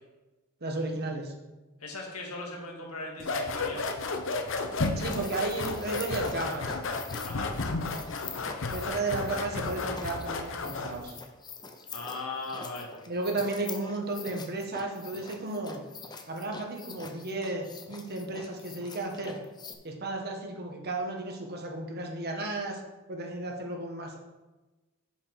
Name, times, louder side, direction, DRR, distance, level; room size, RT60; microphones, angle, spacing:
voice 1, 0.6-1.3 5.0-6.8 8.7-11.1 13.1-15.8 16.3-19.4 19.8-22.8 23.1-24.2, right 2 dB, 50° right, 2 dB, 1.5 m, -34 dB
voice 2, 1.8-3.9 7.2-7.5 11.9-12.9, left 3 dB, 90° left, -1 dB, 2.1 m, -38 dB
sound 1, 3.2-11.0, left 3 dB, 60° left, 0.9 m, -33 dB
sound 2, 5.1-19.7, left 4 dB, 20° left, 0.7 m, -45 dB
7.4 x 7.1 x 4.9 m, 1.1 s
head